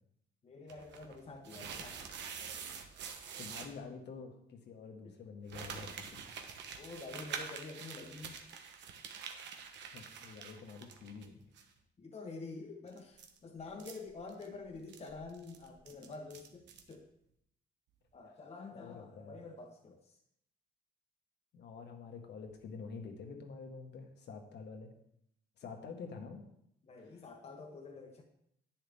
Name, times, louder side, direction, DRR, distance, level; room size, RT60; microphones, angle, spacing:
voice 1, 0.4-2.1 5.0-5.2 6.7-8.4 12.0-17.1 18.1-20.2 26.8-28.2, left 3 dB, 35° left, 1 dB, 1.2 m, -48 dB
sound 1, 0.7-3.7 5.5-11.3 11.5-11.6 12.9-16.9, right 6 dB, 90° right, 1.2 m, -46 dB
voice 2, 3.0-6.2 9.9-11.4 18.7-19.4 21.5-24.9 25.6-26.4, left 5 dB, 75° left, 4 dB, 1.7 m, -48 dB
10.5 x 9.4 x 3.6 m, 0.74 s
cardioid pair, 115°, 18 cm